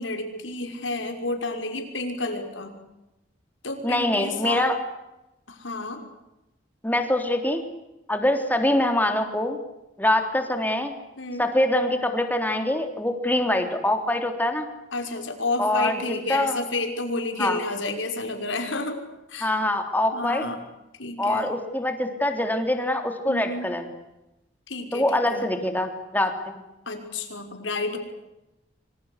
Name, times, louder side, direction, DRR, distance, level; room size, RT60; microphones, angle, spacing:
voice 1, 0.0-2.8 3.6-4.7 5.5-6.0 11.2-11.4 14.9-19.0 19.3-19.5 20.1-20.6 21.0-21.5 23.3-23.7 24.7-25.5 26.9-28.0, left 2 dB, 85° left, 5 dB, 6.0 m, -30 dB
voice 2, 3.8-4.8 6.8-7.6 8.1-9.6 10.0-10.9 11.4-14.7 15.6-16.0 16.3-16.6 17.4-17.6 19.4-20.4 21.2-23.8 24.9-26.3, left 1 dB, 10° left, 6 dB, 3.4 m, -24 dB
26.0 x 26.0 x 8.3 m, 0.96 s
head